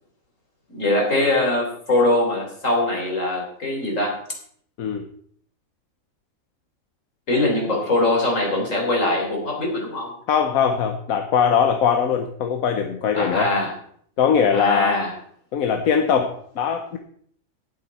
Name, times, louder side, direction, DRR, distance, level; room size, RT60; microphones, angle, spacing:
voice 1, 0.7-4.1 7.3-10.1 13.1-13.8 14.5-15.1, left 2 dB, 65° left, 0 dB, 4.3 m, -22 dB
voice 2, 10.3-13.5 14.2-15.0 15.5-17.0, left 7 dB, 85° left, 6 dB, 1.4 m, -21 dB
18.0 x 8.0 x 4.2 m, 0.63 s
omnidirectional pair, 1.4 m